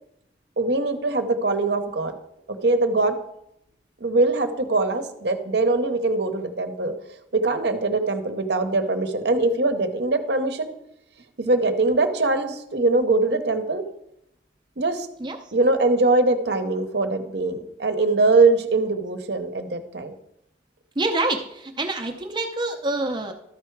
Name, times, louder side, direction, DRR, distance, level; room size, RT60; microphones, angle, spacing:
voice 1, 0.6-2.1 2.6-3.2 4.0-6.9 7.3-10.7 11.4-13.8 14.8-15.1 15.5-20.1, right 3 dB, 60° right, 8 dB, 0.8 m, -22 dB
voice 2, 21.0-23.3, right 2 dB, 25° right, 4 dB, 0.6 m, -26 dB
12.5 x 4.7 x 4.6 m, 0.81 s
head